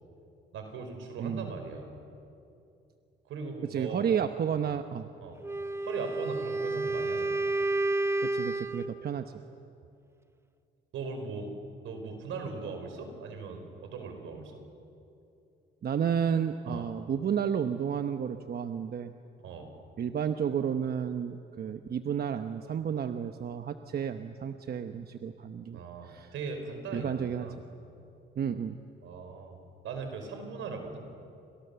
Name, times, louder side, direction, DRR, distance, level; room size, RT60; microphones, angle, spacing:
voice 1, 0.5-1.9 3.2-4.3 5.2-5.4 5.8-7.4 10.9-11.5 11.8-14.6 16.6-16.9 19.4-19.7 25.7-27.6 29.0-29.6 29.8-31.0, right 4 dB, 80° right, 5 dB, 4.9 m, -39 dB
voice 2, 3.7-5.1 8.3-9.4 15.8-19.1 20.0-26.3 26.9-27.5 28.4-28.8, right 8 dB, 50° right, 8 dB, 1.0 m, -31 dB
Wind instrument woodwind instrument, 5.4-9.0, right 2 dB, 15° right, 0.9 m, -30 dB
29.5 x 26.0 x 7.0 m, 2.6 s
cardioid pair, 90°, 20 cm